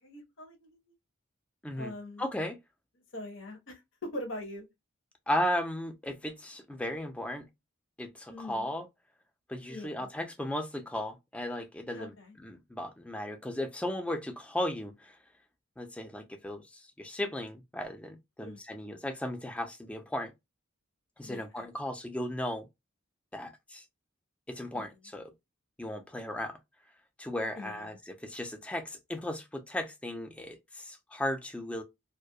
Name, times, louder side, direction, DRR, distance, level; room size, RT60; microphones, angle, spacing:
voice 1, 0.0-0.8 1.8-2.3 3.1-4.7 8.3-8.7 9.7-10.1 11.9-12.3 18.4-18.9 21.2-21.7 24.7-24.8 27.6-28.0, left 1 dB, 70° left, 0.7 m, -43 dB
voice 2, 2.2-2.6 5.3-7.5 8.0-8.9 9.5-12.1 12.4-15.2 15.8-20.3 21.2-22.7 23.3-23.8 24.5-25.3 25.8-26.6 27.2-31.8, left 1 dB, 5° left, 0.3 m, -36 dB
2.3 x 2.1 x 2.6 m
head